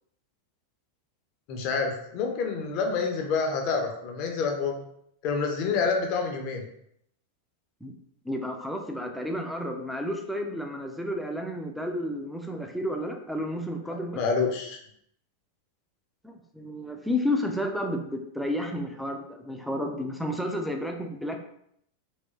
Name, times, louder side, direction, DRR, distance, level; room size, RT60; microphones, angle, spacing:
voice 1, 1.5-4.8 5.2-6.6 14.1-14.8, left 5 dB, 45° left, 3 dB, 0.6 m, -27 dB
voice 2, 8.2-14.2 16.2-21.4, left 1 dB, ahead, 3 dB, 0.4 m, -31 dB
3.4 x 3.0 x 2.6 m, 0.72 s
figure-of-eight pair, 90°, 0 cm